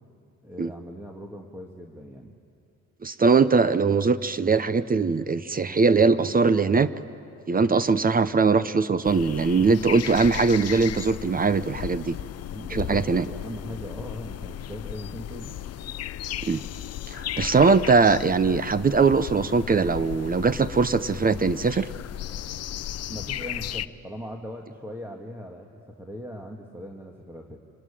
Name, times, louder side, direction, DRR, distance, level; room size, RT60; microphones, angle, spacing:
voice 1, 0.4-2.4 12.5-15.6 23.1-27.6, equal, 10° right, 1 dB, 1.9 m, -39 dB
voice 2, 3.0-6.9 7.5-12.1 12.7-13.2 16.4-16.6 17.1-21.9, right 4 dB, 30° right, 14 dB, 0.7 m, -21 dB
sound 1, 9.0-23.9, left 11 dB, 55° left, 0.6 m, -35 dB
26.0 x 19.5 x 10.0 m, 2.5 s
cardioid pair, 90°, 30 cm